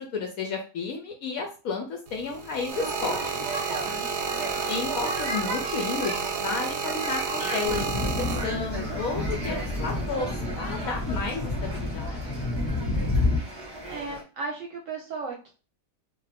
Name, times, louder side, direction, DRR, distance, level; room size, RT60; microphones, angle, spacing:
voice 1, 0.0-3.5 4.7-12.4, left 4 dB, 70° left, 3 dB, 0.9 m, -32 dB
sound 1, 2.1-8.9 9.7-10.0, right 6 dB, 85° right, 1.2 m, -31 dB
sound 2, 2.7-14.2, right 1 dB, 20° right, 0.8 m, -36 dB
voice 2, 3.8-4.4 13.9-15.5, right 4 dB, 60° right, 0 dB, 0.9 m, -36 dB
sound 3, 7.6-13.4, left 2 dB, 20° left, 1.1 m, -29 dB
2.5 x 2.4 x 3.2 m, 0.34 s
omnidirectional pair, 1.8 m